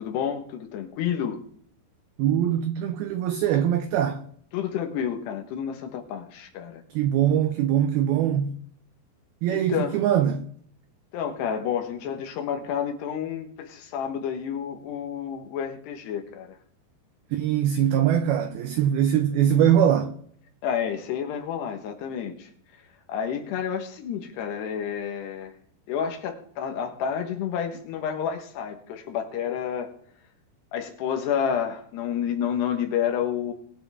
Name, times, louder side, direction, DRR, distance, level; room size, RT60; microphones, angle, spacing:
voice 1, 0.0-1.4 4.5-6.8 9.5-10.0 11.1-16.6 20.6-22.5 23.1-25.5 25.9-29.9 30.7-33.5, left 8 dB, 70° left, 3.2 m, -30 dB
voice 2, 2.2-4.2 6.9-8.6 9.4-10.5 17.3-20.1, right 10 dB, 85° right, 2.1 m, -22 dB
22.5 x 8.9 x 3.6 m
omnidirectional pair, 5.2 m